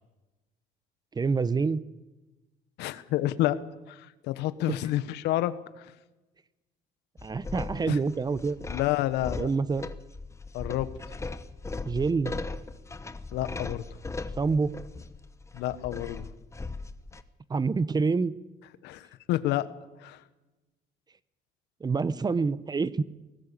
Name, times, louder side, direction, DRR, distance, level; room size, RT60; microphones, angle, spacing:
voice 1, 1.1-1.8 4.7-4.8 7.2-8.6 9.4-9.9 11.8-12.3 14.3-14.7 17.5-18.3 21.8-23.0, right 4 dB, 25° right, 17 dB, 0.9 m, -27 dB
voice 2, 2.8-3.6 3.9-5.9 7.9-8.0 8.7-9.5 10.5-10.9 13.3-13.8 15.5-16.2 18.8-19.7 20.0-20.2, left 14 dB, 90° left, 14 dB, 1.3 m, -29 dB
sound 1, 7.2-17.2, left 3 dB, 15° left, 1.2 m, -38 dB
21.5 x 19.0 x 8.5 m, 1.1 s
cardioid pair, 110°, 17 cm